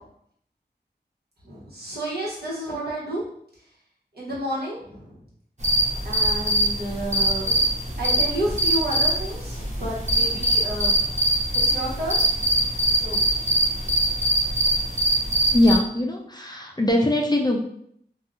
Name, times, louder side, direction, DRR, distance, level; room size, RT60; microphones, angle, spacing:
voice 1, 1.4-3.2 4.1-5.2 6.0-7.7 8.0-11.0 11.6-13.2, right 1 dB, 65° right, -8 dB, 1.2 m, -31 dB
sound 1, 5.6-15.8, right 1 dB, 40° right, 0.8 m, -22 dB
voice 2, 15.5-17.6, left 1 dB, 25° left, 1 dB, 0.4 m, -21 dB
2.7 x 2.3 x 2.4 m, 0.68 s
wide cardioid pair, 40°, 18 cm